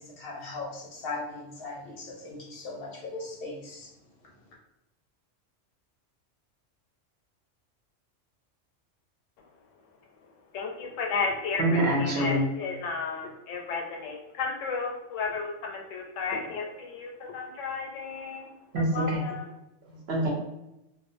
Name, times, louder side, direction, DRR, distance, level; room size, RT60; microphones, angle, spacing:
voice 1, 0.0-3.9, left 3 dB, 60° left, -2 dB, 0.7 m, -38 dB
voice 2, 10.5-19.5, left 4 dB, 90° left, 1 dB, 0.9 m, -33 dB
voice 3, 11.6-12.4 18.7-19.2 19.9-20.3, right 1 dB, 65° right, -3 dB, 0.9 m, -25 dB
2.4 x 2.2 x 2.5 m, 0.89 s
omnidirectional pair, 1.3 m